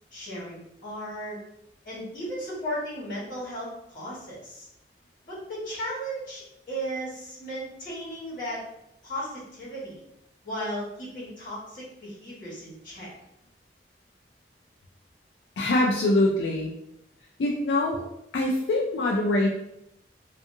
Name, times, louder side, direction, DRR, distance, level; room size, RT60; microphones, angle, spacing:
voice 1, 0.1-1.4 1.8-4.7 5.2-8.6 9.0-10.0 10.4-13.1, equal, 50° left, -7 dB, 1.4 m, -35 dB
voice 2, 15.6-16.7 17.4-18.0 18.3-19.5, left 2 dB, 85° left, -2 dB, 0.4 m, -23 dB
2.6 x 2.5 x 2.6 m, 0.81 s
head